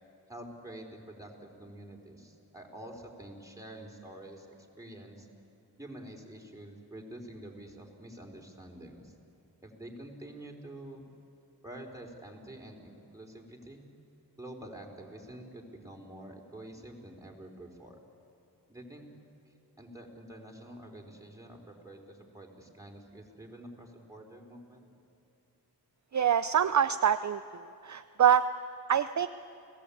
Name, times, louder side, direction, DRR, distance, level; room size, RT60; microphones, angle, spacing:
voice 1, 0.3-4.5 4.8-5.3 5.8-9.1 9.6-11.0 11.6-13.8 14.4-18.0 18.7-19.0 19.8-24.9, right 1 dB, 10° right, 0 dB, 4.3 m, -47 dB
voice 2, 26.1-27.4 27.8-28.4 28.9-29.3, right 9 dB, 45° right, 11 dB, 0.6 m, -25 dB
30.0 x 17.5 x 8.6 m, 2.7 s
cardioid pair, 65°, 41 cm